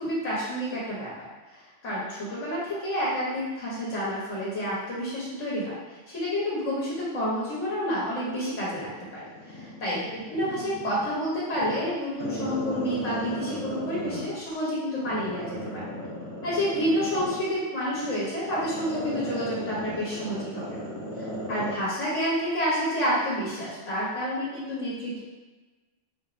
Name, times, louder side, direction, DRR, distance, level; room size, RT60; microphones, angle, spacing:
voice 1, 0.0-15.9 16.4-20.8 21.2-25.2, equal, 75° left, -8 dB, 1.3 m, -29 dB
Growling, 9.4-11.1 11.5-14.5 15.0-21.8 22.1-22.2, equal, 55° left, 1.5 m, -35 dB
4.2 x 3.0 x 2.5 m, 1.2 s
omnidirectional pair, 1.2 m